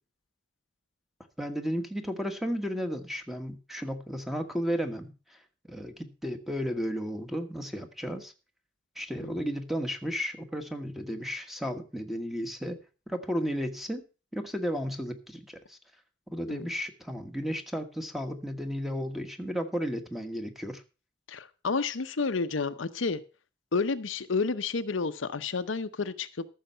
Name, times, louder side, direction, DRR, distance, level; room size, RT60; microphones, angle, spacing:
voice 1, 1.4-5.4 5.7-8.3 9.0-12.8 13.1-14.0 14.3-15.8 16.3-20.8, equal, ahead, 7 dB, 1.3 m, -33 dB
voice 2, 21.3-23.2 23.7-26.5, left 4 dB, 80° left, 11 dB, 0.7 m, -30 dB
14.0 x 6.5 x 5.5 m, 0.33 s
head